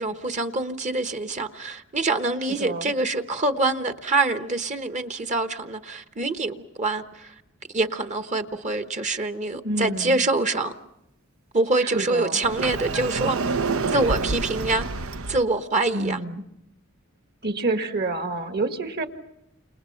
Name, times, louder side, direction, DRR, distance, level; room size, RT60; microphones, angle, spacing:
voice 1, 0.0-7.3 7.7-10.7 11.5-13.4 13.9-14.9 15.3-16.2, right 2 dB, 35° right, 1.1 m, -25 dB
voice 2, 2.6-2.9 9.6-10.2 11.8-12.4 15.9-16.4 17.4-19.1, right 2 dB, 50° right, 1.9 m, -28 dB
Sliding door, 12.4-15.4, right 4 dB, 85° right, 0.9 m, -27 dB
30.0 x 27.5 x 5.8 m
head